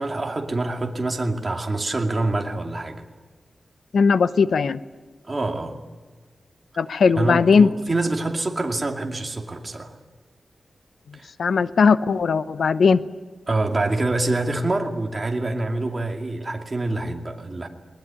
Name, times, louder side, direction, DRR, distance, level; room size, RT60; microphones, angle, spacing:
voice 1, 0.0-3.0 5.3-5.8 7.1-9.9 11.1-11.3 13.5-17.7, right 2 dB, 30° right, 2 dB, 2.5 m, -26 dB
voice 2, 3.9-4.8 6.8-7.7 11.4-13.0, left 5 dB, 80° left, 13 dB, 0.8 m, -18 dB
21.0 x 19.5 x 9.9 m, 1.3 s
wide cardioid pair, 115°, 0 cm